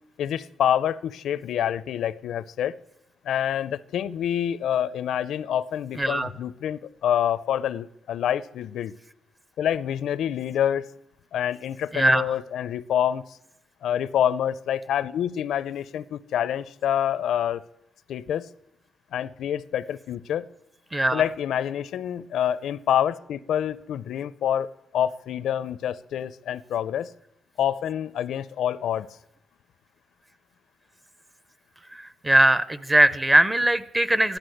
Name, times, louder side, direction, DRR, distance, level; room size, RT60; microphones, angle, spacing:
voice 1, 0.2-2.8 3.2-8.9 9.6-10.9 11.3-13.2 13.8-17.6 18.1-18.5 19.1-20.5 21.1-24.7 24.9-27.1 27.6-29.1, left 10 dB, 85° left, 0.6 m, -27 dB
voice 2, 6.0-6.3 11.9-12.2 20.9-21.2 32.2-34.4, right 1 dB, 15° right, 0.6 m, -20 dB
15.0 x 11.5 x 7.8 m
wide cardioid pair, 180°, 0 cm